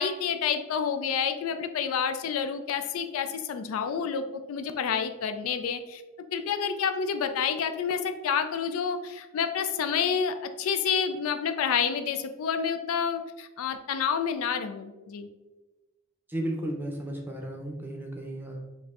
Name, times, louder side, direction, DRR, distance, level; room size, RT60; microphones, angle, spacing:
voice 1, 0.0-6.0 6.3-15.3, left 7 dB, 70° left, 8 dB, 0.3 m, -29 dB
voice 2, 16.3-18.6, right 1 dB, 10° right, 0 dB, 0.6 m, -34 dB
6.4 x 2.6 x 2.4 m, 1.2 s
head